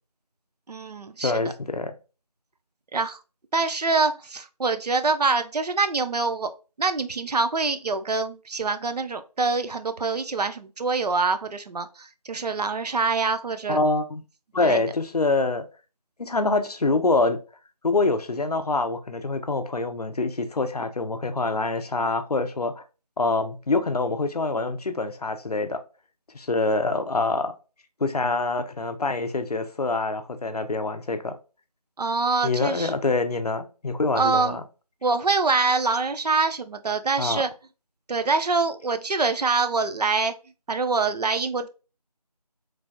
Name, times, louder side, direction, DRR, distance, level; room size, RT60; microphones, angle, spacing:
voice 1, 0.7-1.3 2.9-3.2 3.5-6.5 6.8-13.8 14.6-14.8 32.0-32.9 34.2-34.6 35.0-37.5 38.1-40.3 40.7-41.7, right 4 dB, 75° right, 0.4 m, -25 dB
voice 2, 1.2-1.9 13.7-14.2 14.5-15.7 16.2-17.4 17.8-22.8 23.2-25.8 26.3-27.5 28.0-31.3 32.4-34.6 37.2-37.4, left 3 dB, 70° left, 0.5 m, -25 dB
3.2 x 2.2 x 2.5 m
figure-of-eight pair, 175°, 21 cm